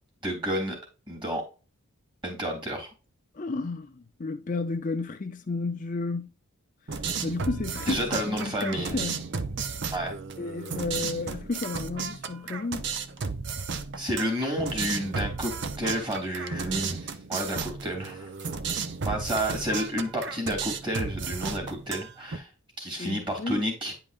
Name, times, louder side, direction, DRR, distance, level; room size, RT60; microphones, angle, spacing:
voice 1, 0.2-0.8 1.1-1.4 2.2-2.9 7.9-9.0 9.9-10.1 14.0-15.5 15.8-18.5 19.0-22.5 22.8-23.9, equal, 20° right, 3.1 m, -30 dB
voice 2, 3.3-6.3 7.2-9.3 10.4-12.9 23.0-23.7, left 3 dB, 35° left, 0.5 m, -32 dB
sound 1, 6.9-22.4, right 5 dB, 50° right, 0.7 m, -34 dB
9.9 x 5.4 x 2.5 m
head